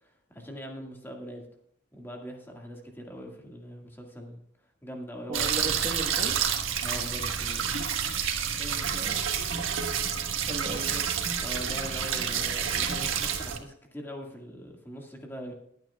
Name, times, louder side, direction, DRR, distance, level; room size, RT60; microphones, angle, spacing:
voice 1, 0.0-1.4 1.9-4.4 4.8-5.7 6.8-7.8 10.8-10.9 11.4-15.5, equal, 10° left, 0 dB, 1.9 m, -42 dB
voice 2, 5.3-6.3 8.6-9.2 10.5-11.0, right 1 dB, 35° right, 2 dB, 1.4 m, -36 dB
sound 1, 5.3-13.6, right 7 dB, 90° right, 1.5 m, -29 dB
21.0 x 9.0 x 2.4 m, 0.69 s
head